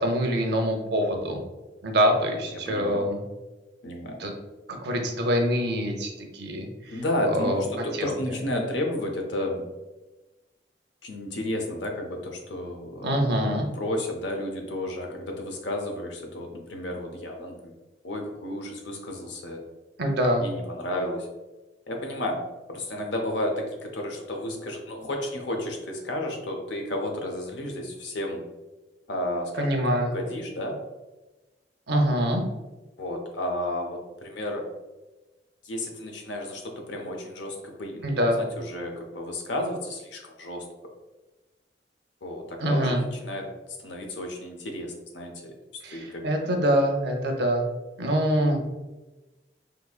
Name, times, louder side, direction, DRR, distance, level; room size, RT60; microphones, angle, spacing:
voice 1, 0.0-1.4 1.8-3.2 4.2-4.3 4.7-7.0 7.3-7.7 8.0-8.1 13.0-13.7 20.0-20.5 29.6-30.1 31.9-32.4 38.0-38.4 42.6-43.0 45.8-47.6 48.0-48.6, equal, 65° right, 3 dB, 0.6 m, -25 dB
voice 2, 2.5-3.1 3.8-4.2 6.9-9.6 11.0-13.1 13.7-17.6 18.0-19.6 20.4-21.3 21.9-22.4 22.7-28.4 29.1-29.7 30.1-30.8 33.0-34.7 35.6-40.6 42.2-43.5 43.8-45.5 45.9-46.2, left 1 dB, 80° left, 2 dB, 0.6 m, -32 dB
3.8 x 2.7 x 2.3 m, 1.1 s
head